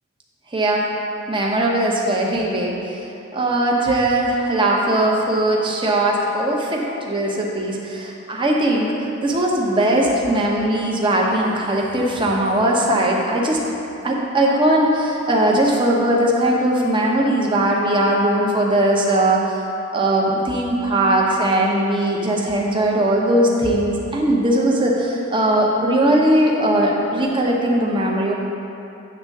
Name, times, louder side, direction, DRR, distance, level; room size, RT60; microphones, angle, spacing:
voice 1, 0.5-0.9 1.3-3.0 3.3-13.6 14.0-19.6 19.9-28.3, right 1 dB, 25° right, -2 dB, 0.9 m, -19 dB
8.8 x 3.7 x 6.5 m, 2.8 s
head